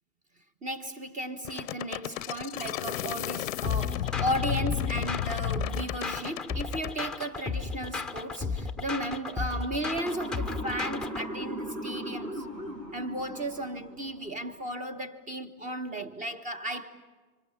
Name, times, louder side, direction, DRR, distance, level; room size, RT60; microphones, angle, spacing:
voice 1, 0.6-12.4 12.9-16.9, right 1 dB, 15° right, 1.5 m, -35 dB
sound 1, 1.4-6.9, left 14 dB, 55° left, 0.8 m, -33 dB
sound 2, 3.6-11.3, left 4 dB, ahead, 1.0 m, -34 dB
Motor vehicle (road) / Siren, 10.0-14.2, equal, 90° right, 7.0 m, -38 dB
30.0 x 26.0 x 7.4 m
hypercardioid pair, 115°, 48 cm